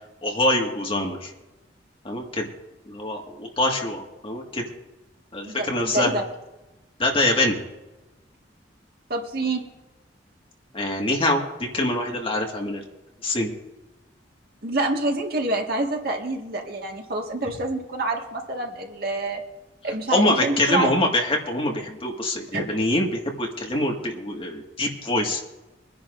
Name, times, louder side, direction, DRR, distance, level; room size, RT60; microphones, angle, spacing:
voice 1, 0.2-1.3 2.0-2.5 2.9-4.6 5.3-6.2 7.0-7.6 10.7-12.8 13.2-13.5 20.1-25.4, left 1 dB, 30° left, 0 dB, 1.9 m, -24 dB
voice 2, 5.4-6.2 9.1-9.6 14.6-19.4 19.8-20.9 22.5-22.7, right 2 dB, 55° right, 1 dB, 1.8 m, -27 dB
24.0 x 10.5 x 2.6 m, 1.0 s
head